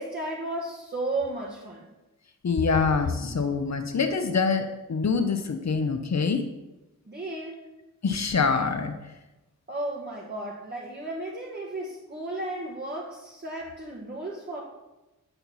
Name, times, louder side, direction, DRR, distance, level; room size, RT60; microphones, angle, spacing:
voice 1, 0.0-1.9 7.1-7.6 9.7-14.6, right 2 dB, 30° right, -3 dB, 1.2 m, -34 dB
voice 2, 2.4-6.4 8.0-9.1, left 5 dB, 55° left, 6 dB, 0.8 m, -25 dB
8.9 x 4.4 x 5.6 m, 1.0 s
wide cardioid pair, 125°, 34 cm